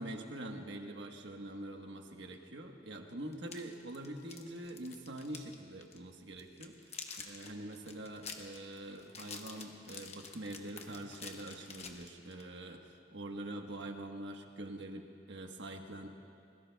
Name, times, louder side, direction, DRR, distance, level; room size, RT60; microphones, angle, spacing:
voice 1, 0.0-16.1, right 1 dB, 75° right, 3 dB, 1.3 m, -45 dB
sound 1, 3.3-5.5 5.8-6.0 6.4-12.5, left 5 dB, 35° left, 1.1 m, -48 dB
25.5 x 21.5 x 2.3 m, 2.4 s
head